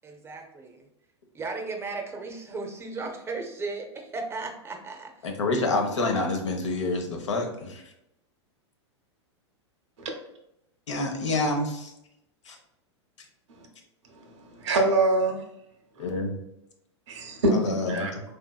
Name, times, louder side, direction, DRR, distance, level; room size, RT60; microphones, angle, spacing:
voice 1, 0.0-0.9 1.3-5.3, right 3 dB, 15° right, 3 dB, 0.6 m, -36 dB
voice 2, 5.2-7.8 10.9-11.9 12.5-12.6 16.0-16.4 17.5-18.2, left 2 dB, 85° left, 3 dB, 0.7 m, -28 dB
voice 3, 14.1-15.4 17.1-17.6 17.9-18.1, right 2 dB, 75° right, 3 dB, 0.9 m, -25 dB
3.8 x 2.7 x 2.2 m, 0.82 s
hypercardioid pair, 105°, 15 cm